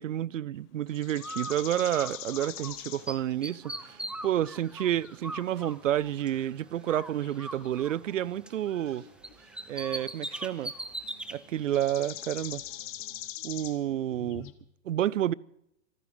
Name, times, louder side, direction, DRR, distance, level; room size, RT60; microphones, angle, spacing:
voice 1, 0.0-9.1 9.7-10.7 11.3-12.6 13.4-14.5 14.9-15.3, right 11 dB, 85° right, 0.6 m, -30 dB
sound 1, 0.9-3.3 4.8-5.1 7.1-7.7 8.9-9.3 11.6-14.5, left 15 dB, 35° left, 1.4 m, -42 dB
Bird, 1.2-2.8 3.1-6.5 6.8-8.9 9.2-11.4, right 1 dB, ahead, 0.8 m, -40 dB
sound 2, 1.2-13.3, right 7 dB, 65° right, 3.3 m, -59 dB
27.0 x 9.9 x 5.1 m
hypercardioid pair, 115°, 37 cm